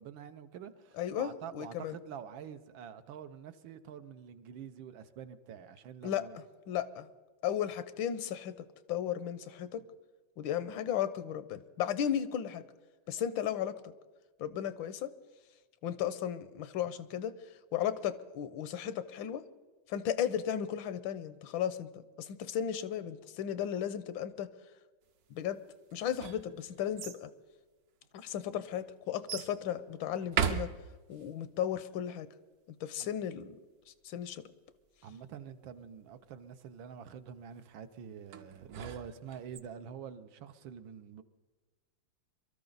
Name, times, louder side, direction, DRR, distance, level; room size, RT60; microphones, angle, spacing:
voice 1, 0.0-6.4 33.0-33.1 35.0-41.2, right 8 dB, 80° right, 1.6 m, -47 dB
voice 2, 1.0-2.0 6.0-6.2 6.7-7.1 7.4-9.8 10.4-12.7 13.1-13.9 14.4-15.1 15.8-17.3 17.7-19.4 19.9-24.5 25.3-25.6 25.9-27.3 28.1-30.7 31.1-32.3 32.8-33.5 34.0-34.4, left 9 dB, 80° left, 1.5 m, -35 dB
sound 1, 25.9-27.2 28.0-28.1 29.3-29.6 30.2-31.3 38.3-39.6, right 7 dB, 60° right, 1.2 m, -36 dB
23.5 x 13.0 x 4.0 m
omnidirectional pair, 2.1 m